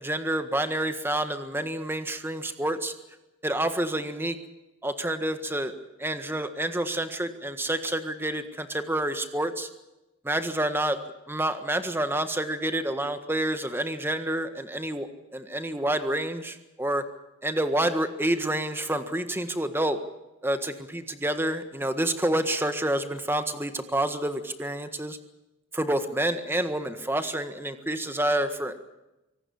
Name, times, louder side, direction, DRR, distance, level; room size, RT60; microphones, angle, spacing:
voice 1, 0.0-2.9 3.4-4.4 4.8-5.7 6.0-9.7 10.2-17.0 17.4-20.0 20.4-25.2 25.7-28.8, right 1 dB, 10° right, 8 dB, 1.5 m, -28 dB
24.5 x 18.5 x 7.2 m, 0.97 s
head